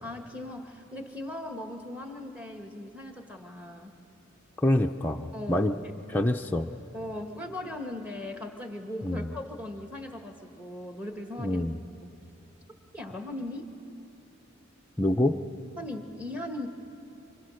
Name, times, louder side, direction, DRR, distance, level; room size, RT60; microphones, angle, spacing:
voice 1, 0.0-3.9 5.3-5.9 6.9-11.6 12.9-13.7 15.8-16.7, left 1 dB, 5° right, 4 dB, 1.5 m, -38 dB
voice 2, 4.6-5.7 6.1-6.7 9.0-9.3 11.4-11.8 15.0-15.4, left 1 dB, 10° left, 2 dB, 0.5 m, -26 dB
26.0 x 25.5 x 6.4 m, 2.8 s
head